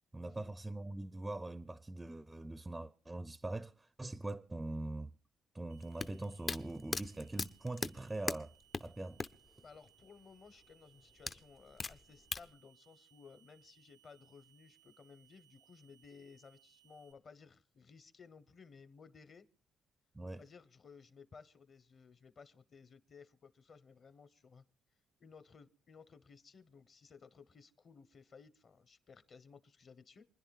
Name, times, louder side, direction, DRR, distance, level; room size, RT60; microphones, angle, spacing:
voice 1, 0.1-5.1 5.5-8.5 8.8-9.2 20.1-20.4, right 2 dB, 15° right, 0.5 m, -42 dB
sound 1, 5.7-17.1, right 15 dB, 80° right, 0.8 m, -69 dB
sound 2, 5.8-9.5 9.8-9.9 11.3-12.5, left 3 dB, 30° left, 0.5 m, -38 dB
voice 2, 9.6-19.5 20.3-24.6 25.2-30.3, left 5 dB, 50° left, 1.0 m, -58 dB
28.0 x 10.5 x 2.4 m
cardioid pair, 90°, 0 cm